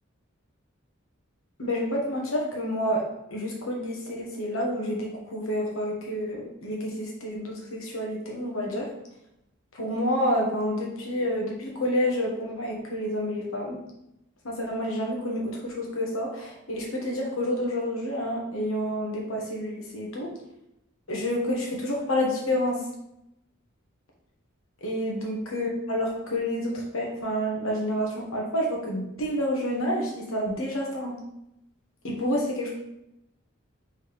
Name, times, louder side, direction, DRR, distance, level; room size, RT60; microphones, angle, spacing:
voice 1, 1.6-3.0 3.3-8.9 9.7-13.8 14.4-20.3 21.1-22.8 24.8-31.2 32.0-32.7, equal, 80° left, -1 dB, 1.2 m, -29 dB
4.2 x 3.5 x 3.4 m, 0.85 s
head